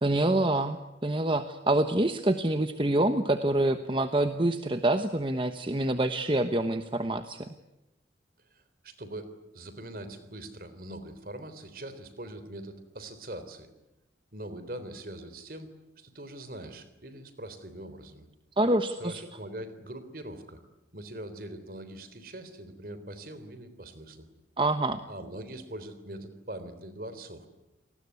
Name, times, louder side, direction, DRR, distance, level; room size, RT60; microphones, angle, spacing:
voice 1, 0.0-7.5 18.6-19.2 24.6-25.0, right 1 dB, 30° right, 8 dB, 1.1 m, -26 dB
voice 2, 8.5-13.7 14.3-15.7 16.0-18.3 19.0-20.6 20.9-24.3 25.1-27.5, right 1 dB, 50° right, 12 dB, 3.5 m, -42 dB
29.0 x 20.0 x 9.6 m, 0.98 s
head